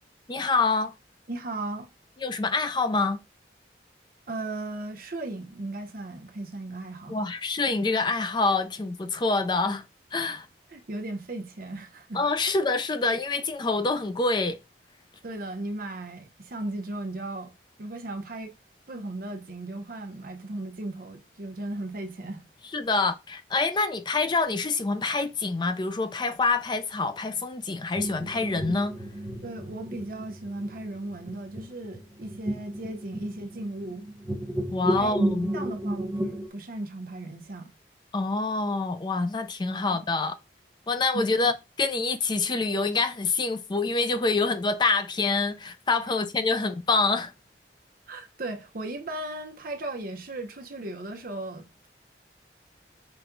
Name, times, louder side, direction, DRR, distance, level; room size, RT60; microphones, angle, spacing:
voice 1, 0.3-0.9 2.2-3.2 7.1-9.8 10.1-10.5 12.1-14.6 22.7-28.9 34.7-35.5 38.1-40.3 40.9-47.3, left 3 dB, 25° left, 0.4 m, -26 dB
voice 2, 1.3-1.9 4.3-7.2 10.7-12.2 15.2-17.5 17.8-18.5 18.9-22.4 29.4-34.0 35.0-35.2 35.5-37.7 39.9-40.0 41.1-41.5 48.1-51.9, right 2 dB, 50° right, 0.8 m, -36 dB
sound 1, 28.0-36.5, right 1 dB, 20° right, 0.6 m, -33 dB
5.8 x 2.3 x 3.8 m
head